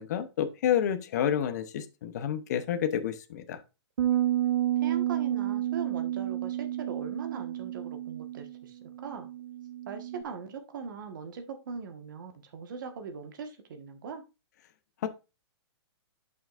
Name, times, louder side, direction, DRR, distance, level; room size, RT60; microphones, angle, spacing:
voice 1, 0.0-3.6 15.0-15.1, left 9 dB, 40° left, 0.8 m, -29 dB
sound 1, 4.0-10.2, right 12 dB, 75° right, 0.5 m, -30 dB
voice 2, 4.8-9.3 9.9-14.2, right 5 dB, 45° right, 1.4 m, -40 dB
11.0 x 5.8 x 2.5 m
hypercardioid pair, 175°, 15 cm